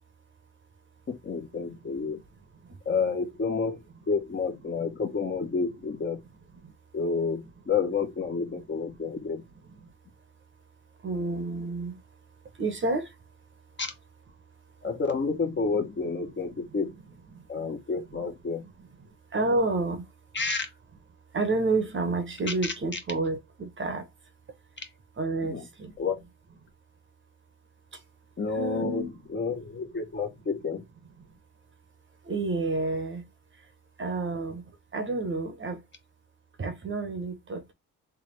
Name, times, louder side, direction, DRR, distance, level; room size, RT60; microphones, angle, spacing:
voice 1, 1.1-2.2 2.8-6.2 6.9-9.4 13.8-13.9 14.8-16.9 17.5-18.6 20.3-20.7 22.6-22.7 24.8-24.9 25.4-25.7 26.0-26.2 28.4-29.0 29.3-30.8, left 4 dB, 30° left, 1.0 m, -30 dB
voice 2, 11.0-12.0 12.6-13.1 17.3-17.5 19.0-20.1 21.3-24.1 25.2-25.9 27.9-28.0 28.5-29.1 32.2-33.3 34.0-34.6 34.9-35.8 36.6-37.7, right 3 dB, 35° right, 1.0 m, -30 dB
3.6 x 3.3 x 3.2 m
cardioid pair, 140°, 36 cm